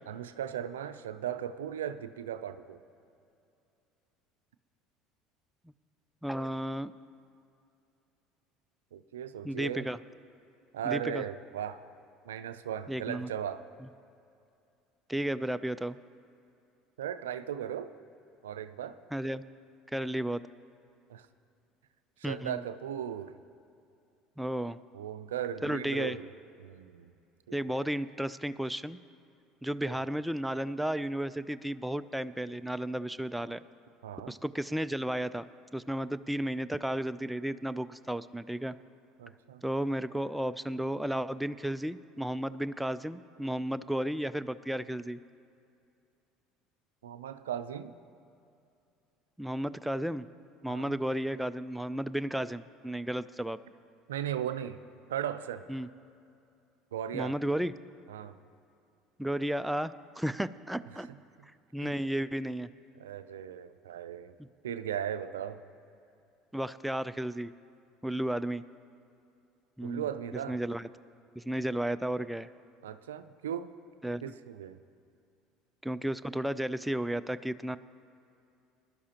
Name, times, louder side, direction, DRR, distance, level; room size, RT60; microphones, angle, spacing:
voice 1, 0.1-2.8 8.9-9.9 10.7-11.8 12.3-13.6 17.0-17.9 18.4-19.0 21.1-21.3 22.2-23.3 24.9-26.3 26.6-27.1 27.5-27.9 29.9-30.0 34.0-34.3 39.2-39.6 47.0-47.9 50.7-51.0 54.1-54.8 55.1-55.7 56.9-57.3 58.1-58.3 60.9-61.0 61.8-61.9 63.0-64.3 64.6-65.6 69.8-70.6 72.8-73.7 74.2-74.8, right 9 dB, 90° right, 11 dB, 0.4 m, -37 dB
voice 2, 6.2-6.9 9.4-10.0 10.8-11.2 12.9-13.3 13.8-13.9 15.1-16.0 19.1-19.4 19.9-20.4 22.2-22.6 24.4-24.8 25.6-26.2 27.5-29.0 29.6-33.6 34.3-35.4 35.7-38.8 39.6-45.2 49.4-50.3 50.6-53.6 55.7-55.9 57.1-57.7 59.2-61.1 61.7-62.7 66.5-67.5 68.0-68.6 69.8-70.1 70.5-70.9 71.4-72.5 74.0-74.2 75.8-77.8, right 1 dB, 5° right, 13 dB, 0.4 m, -33 dB
20.0 x 11.5 x 2.9 m, 2.6 s
hypercardioid pair, 75°, 0 cm